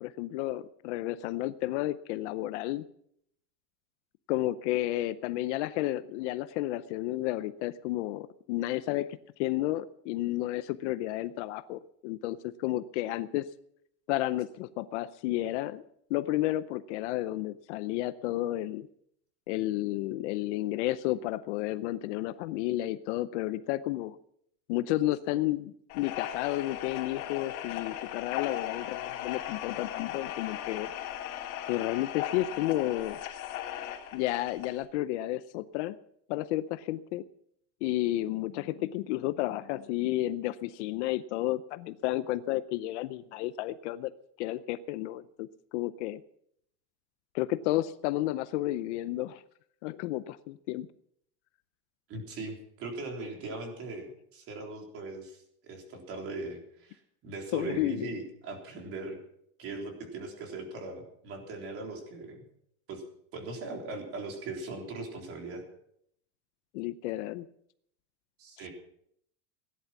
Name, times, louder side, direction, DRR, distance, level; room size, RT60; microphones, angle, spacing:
voice 1, 0.0-2.8 4.3-9.1 9.4-13.5 14.1-15.8 16.1-18.9 19.5-24.2 24.7-30.9 31.7-33.2 34.1-36.0 36.3-37.2 37.8-44.1 44.4-45.5 45.7-46.2 47.3-49.4 49.8-50.9 57.5-58.1 66.7-67.5, left 15 dB, 55° left, 14 dB, 0.7 m, -32 dB
sound 1, 25.9-34.8, left 12 dB, 80° left, 3.4 m, -37 dB
voice 2, 52.1-59.2 59.6-62.4 62.9-63.0 63.3-65.6 68.4-68.7, right 3 dB, 30° right, 2 dB, 3.8 m, -39 dB
17.5 x 11.0 x 6.0 m, 0.70 s
supercardioid pair, 165°, 43 cm